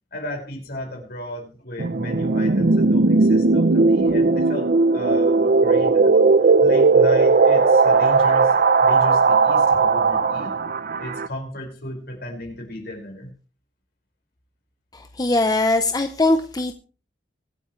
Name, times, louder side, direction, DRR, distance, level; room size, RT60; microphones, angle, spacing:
voice 1, 0.1-6.1 6.4-10.6 11.0-13.3, left 1 dB, 60° left, 1 dB, 5.4 m, -34 dB
sound 1, 1.8-11.3, right 4 dB, 55° right, 0.7 m, -17 dB
voice 2, 14.9-16.7, left 2 dB, 20° left, 7 dB, 0.8 m, -21 dB
24.5 x 8.5 x 3.2 m, 0.36 s
head